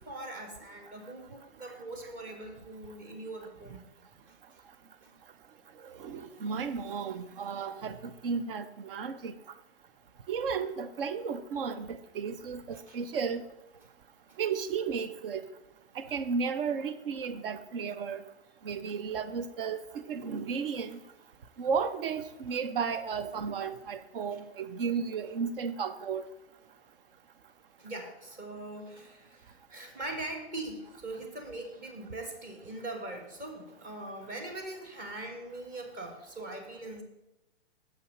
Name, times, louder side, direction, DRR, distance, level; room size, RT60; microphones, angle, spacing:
voice 1, 0.0-3.9 4.3-4.6 5.0-5.1 6.2-6.3 12.9-13.0 14.3-14.4 27.8-37.0, right 2 dB, 25° right, 4 dB, 1.7 m, -41 dB
voice 2, 5.8-9.4 10.3-13.4 14.4-15.4 15.9-18.2 18.6-21.0 21.6-26.2, right 6 dB, 60° right, 11 dB, 0.8 m, -34 dB
7.0 x 5.4 x 6.5 m, 0.93 s
hypercardioid pair, 120°, 32 cm